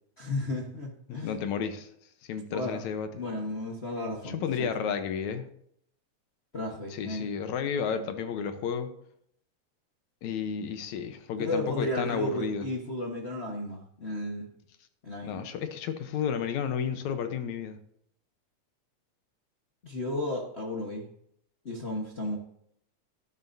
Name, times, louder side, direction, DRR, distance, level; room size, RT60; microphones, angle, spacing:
voice 1, 0.2-1.3 2.5-2.8 3.1-4.7 6.5-7.3 11.4-14.5 15.0-15.4 19.8-21.1 21.6-22.4, left 1 dB, 55° left, -2 dB, 0.7 m, -33 dB
voice 2, 1.1-1.9 2.3-3.1 4.2-5.5 6.9-8.9 10.2-12.7 15.2-17.8, left 7 dB, 75° left, 8 dB, 2.3 m, -32 dB
12.5 x 11.0 x 2.7 m, 0.71 s
omnidirectional pair, 3.5 m